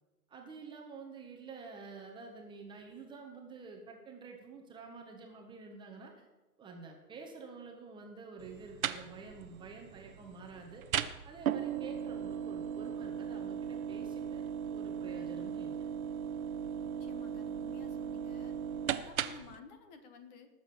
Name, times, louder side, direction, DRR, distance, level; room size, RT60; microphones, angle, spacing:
voice 1, 0.3-6.3 6.6-10.8 11.2-15.8, right 4 dB, 10° right, 1 dB, 1.3 m, -49 dB
sound 1, 8.4-19.6, right 8 dB, 55° right, 1.1 m, -38 dB
voice 2, 16.8-18.6 18.9-20.5, left 6 dB, 25° left, 8 dB, 1.4 m, -53 dB
19.5 x 7.6 x 7.4 m, 1.2 s
hypercardioid pair, 145°, 50 cm